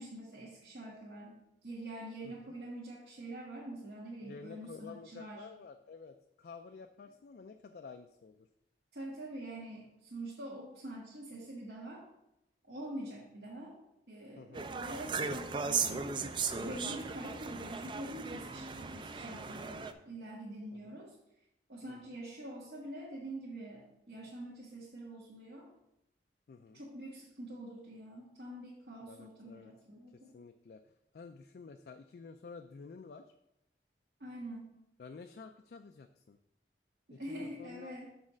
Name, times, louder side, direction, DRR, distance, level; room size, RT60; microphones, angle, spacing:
voice 1, 0.0-5.4 8.9-12.1 12.7-13.8 14.1-16.1 16.6-21.1 21.7-25.7 26.7-30.3 34.2-34.7 37.1-38.1, right 1 dB, 70° right, -6 dB, 1.4 m, -45 dB
voice 2, 4.2-8.5 14.4-14.7 20.7-21.0 21.9-22.2 26.5-26.8 29.0-29.7 30.1-33.3 35.0-36.4 37.1-38.0, left 4 dB, 60° left, 7 dB, 0.3 m, -51 dB
sound 1, 14.5-19.9, right 5 dB, 25° right, 0.3 m, -37 dB
6.4 x 4.1 x 6.1 m, 0.85 s
head